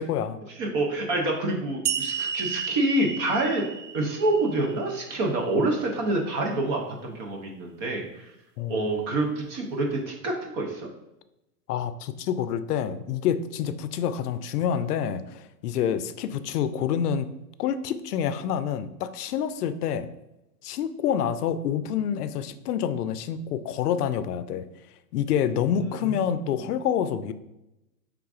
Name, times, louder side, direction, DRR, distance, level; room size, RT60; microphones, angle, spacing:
voice 1, 0.0-0.4 8.6-8.9 11.7-20.1 20.6-24.7 25.1-27.3, left 8 dB, 80° left, 13 dB, 0.5 m, -27 dB
voice 2, 0.6-3.7 3.9-8.3 8.7-10.9 25.8-26.5, right 2 dB, 20° right, 1 dB, 0.3 m, -27 dB
sound 1, 1.9-5.2, right 7 dB, 80° right, 0.7 m, -32 dB
5.7 x 3.5 x 2.4 m, 0.91 s
hypercardioid pair, 120°, 46 cm